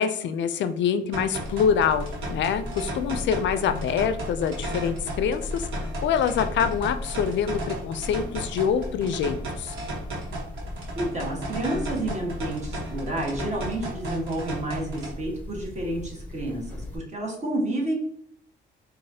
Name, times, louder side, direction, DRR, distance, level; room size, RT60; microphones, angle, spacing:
voice 1, 0.0-9.7, left 7 dB, 65° left, 11 dB, 0.4 m, -25 dB
sound 1, 1.1-15.1, right 2 dB, 85° right, 1.2 m, -35 dB
sound 2, 1.4-17.0, left 2 dB, 10° left, 0.7 m, -37 dB
voice 2, 10.9-17.9, right 1 dB, 35° right, 0 dB, 1.4 m, -30 dB
4.8 x 2.5 x 2.7 m, 0.68 s
cardioid pair, 90°, 20 cm